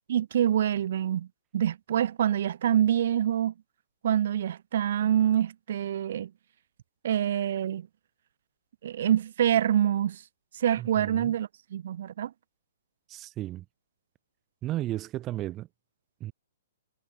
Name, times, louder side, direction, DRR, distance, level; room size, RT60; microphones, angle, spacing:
voice 1, 0.1-1.3 1.5-3.5 4.0-6.3 7.0-7.9 8.8-10.2 10.5-12.3, right 10 dB, 60° right, 0.4 m, -26 dB
voice 2, 10.8-11.3 13.1-13.6 14.6-15.7 16.2-16.3, right 15 dB, 25° right, 1.4 m, -34 dB
hypercardioid pair, 130°, 0 cm